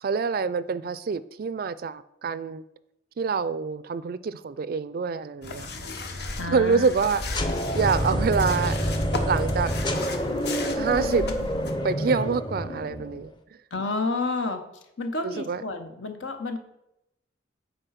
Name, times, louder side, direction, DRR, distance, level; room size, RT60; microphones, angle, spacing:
voice 1, 0.0-2.6 3.2-5.7 6.2-7.2 7.7-8.8 9.3-9.7 10.8-11.2 11.8-13.3 15.2-15.6, right 5 dB, 50° right, 16 dB, 0.3 m, -26 dB
sound 1, 5.4-11.7, left 2 dB, 55° left, 0.9 m, -35 dB
voice 2, 6.4-6.9 13.7-14.6 15.0-16.6, left 3 dB, 85° left, 7 dB, 1.1 m, -30 dB
sound 2, 7.3-13.3, equal, 25° left, 0.7 m, -28 dB
8.9 x 4.6 x 5.7 m, 0.85 s
head